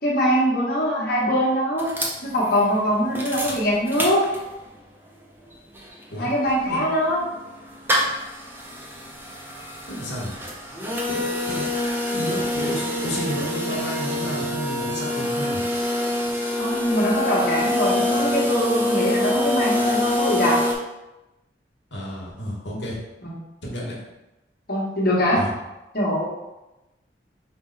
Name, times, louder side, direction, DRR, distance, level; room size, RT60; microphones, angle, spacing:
voice 1, 0.0-1.9 2.2-4.2 6.2-7.2 16.6-20.6 23.2-23.4 24.7-25.4 25.9-26.2, equal, 55° left, -5 dB, 1.3 m, -22 dB
sound 1, 1.8-4.8 5.2-5.3 5.4-20.7, left 1 dB, 10° right, 0.5 m, -26 dB
voice 2, 9.9-10.3 11.1-11.7 12.1-15.6 21.9-23.0 23.6-24.0 25.3-25.5, equal, 75° left, -4 dB, 1.3 m, -31 dB
5.3 x 2.1 x 3.9 m, 0.99 s
head